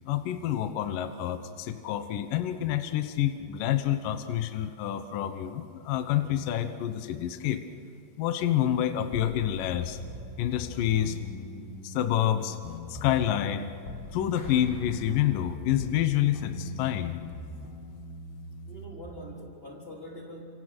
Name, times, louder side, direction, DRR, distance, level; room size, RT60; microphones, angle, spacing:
voice 1, 0.1-7.6 8.2-10.0 10.4-11.2 11.8-12.6 12.9-13.7 14.1-17.1, left 11 dB, 80° left, 8 dB, 1.9 m, -28 dB
sound 1, 9.1-14.2 14.4-19.2, left 1 dB, 65° left, 4.4 m, -42 dB
Clapping, 14.4-16.0, left 3 dB, 45° left, 4.6 m, -54 dB
voice 2, 18.6-20.4, equal, 15° left, -1 dB, 2.8 m, -43 dB
29.5 x 27.0 x 6.3 m, 2.7 s
omnidirectional pair, 5.5 m